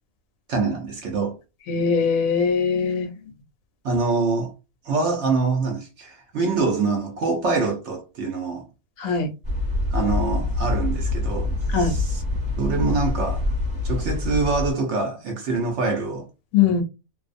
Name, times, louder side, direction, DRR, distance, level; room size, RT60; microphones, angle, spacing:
voice 1, 0.5-1.4 3.8-4.5 4.9-8.7 9.9-12.2 12.6-13.4 13.8-16.3, right 3 dB, 65° right, 0.8 m, -25 dB
voice 2, 1.7-3.1 9.0-9.3 11.7-11.9 16.5-16.8, left 6 dB, 75° left, 1.0 m, -21 dB
sound 1, 9.4-14.7, left 2 dB, 15° right, 0.9 m, -25 dB
2.5 x 2.0 x 2.4 m
omnidirectional pair, 1.5 m